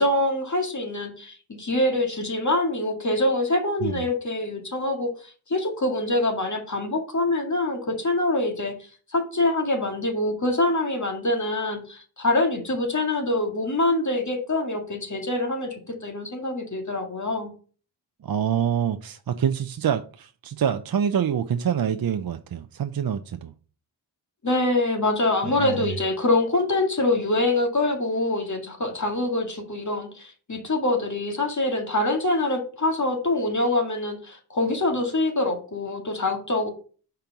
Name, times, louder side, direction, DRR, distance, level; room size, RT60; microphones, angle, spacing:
voice 1, 0.0-8.7 9.1-17.5 24.4-36.7, left 2 dB, 35° left, 2.0 m, -25 dB
voice 2, 18.2-23.5 25.4-25.9, right 8 dB, 50° right, 0.6 m, -26 dB
5.1 x 4.6 x 5.8 m
cardioid pair, 50°, 47 cm